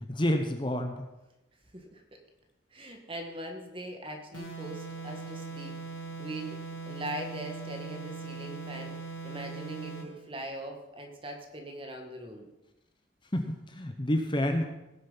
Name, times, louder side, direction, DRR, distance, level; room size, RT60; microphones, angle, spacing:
voice 1, 0.1-1.0 13.3-14.6, left 1 dB, 25° left, 5 dB, 0.9 m, -29 dB
voice 2, 2.7-5.8 6.2-6.6 6.9-12.5, right 1 dB, 25° right, 3 dB, 1.8 m, -41 dB
sound 1, 4.3-10.2, right 4 dB, 80° left, 2.4 m, -40 dB
17.0 x 7.3 x 5.7 m, 0.97 s
head